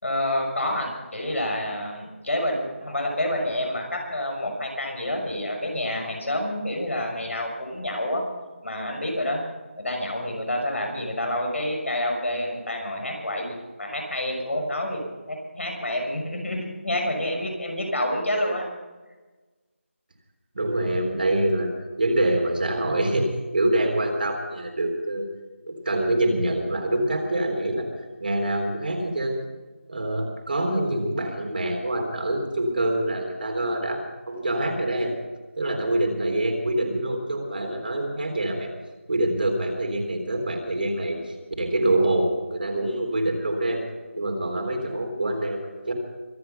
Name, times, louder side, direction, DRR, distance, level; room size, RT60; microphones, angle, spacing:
voice 1, 0.0-8.2 8.6-9.4 9.8-18.6, left 1 dB, 70° left, 1 dB, 6.5 m, -28 dB
voice 2, 20.5-21.7 22.0-25.3 25.7-27.9 28.2-29.4 29.9-35.1 35.6-38.7 39.1-43.8 44.2-45.9, right 1 dB, 45° right, 2 dB, 3.7 m, -25 dB
24.5 x 9.8 x 5.7 m, 1.2 s
figure-of-eight pair, 175°, 7 cm